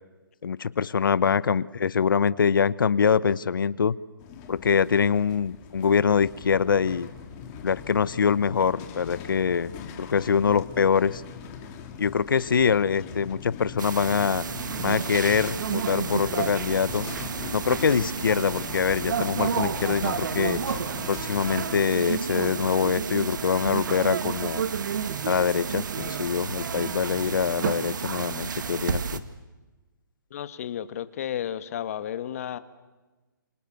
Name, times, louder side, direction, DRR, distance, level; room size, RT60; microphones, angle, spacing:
voice 1, 0.4-4.0 4.5-7.1 7.6-9.7 10.0-11.2 12.0-14.4 14.8-17.1 17.5-20.6 21.1-24.6 25.3-29.2, left 6 dB, 70° left, 18 dB, 1.1 m, -24 dB
sound 1, 4.2-21.8, left 7 dB, 25° left, 3.0 m, -41 dB
sound 2, 13.8-29.2, right 6 dB, 60° right, 1.9 m, -31 dB
voice 2, 30.3-32.6, left 10 dB, 40° left, 12 dB, 1.6 m, -32 dB
28.0 x 28.0 x 6.9 m, 1.2 s
hypercardioid pair, 155°, 12 cm